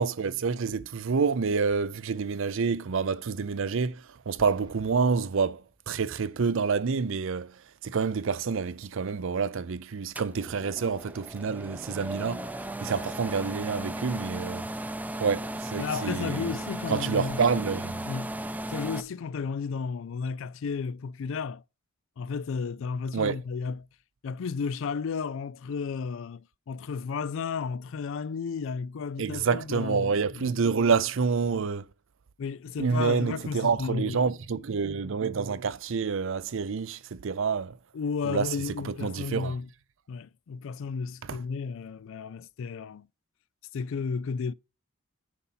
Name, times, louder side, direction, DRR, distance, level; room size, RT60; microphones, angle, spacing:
voice 1, 0.0-7.5 7.8-12.5 12.8-14.7 15.2-16.5 16.9-18.1 23.1-23.4 29.2-31.9 32.8-37.8 38.2-38.5 38.8-39.5 41.3-41.4, right 5 dB, 65° right, 0.5 m, -28 dB
sound 1, 4.4-6.0, equal, 25° right, 2.1 m, -53 dB
sound 2, 10.1-19.0, right 1 dB, 10° right, 0.4 m, -36 dB
voice 2, 15.8-17.4 18.1-18.4 18.7-21.6 22.2-23.9 24.2-30.5 32.4-34.2 37.9-39.7 40.1-43.1 43.7-44.5, left 5 dB, 65° left, 0.4 m, -33 dB
9.6 x 4.1 x 5.6 m
head